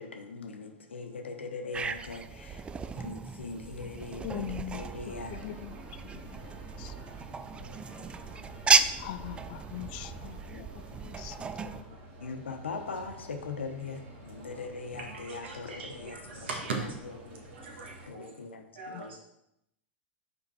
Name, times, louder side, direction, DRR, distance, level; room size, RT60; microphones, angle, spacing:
voice 1, 0.0-4.4 4.7-5.4 7.6-9.1 12.2-16.5 17.2-17.5 18.1-19.2, left 4 dB, 90° left, 5 dB, 0.8 m, -41 dB
sound 1, 1.7-11.8, right 5 dB, 15° right, 0.3 m, -33 dB
voice 2, 4.2-4.9 5.3-5.7 6.1-7.0 9.0-12.0 18.9-19.0, left 13 dB, 55° left, 13 dB, 0.4 m, -42 dB
sound 2, 4.2-4.7 5.8-6.3 6.6-6.8 7.1-7.2 7.7-8.5 9.0-9.3 10.0-10.2 10.7-11.2 12.3-13.4 14.9-15.3 15.9-16.8, left 2 dB, 25° left, 0.9 m, -57 dB
sound 3, 4.7-18.1, right 1 dB, 50° right, 2.1 m, -50 dB
voice 3, 15.0-18.4 18.7-19.2, right 4 dB, 75° right, 1 dB, 1.5 m, -40 dB
5.4 x 4.5 x 4.2 m, 0.81 s
hypercardioid pair, 100°, 6 cm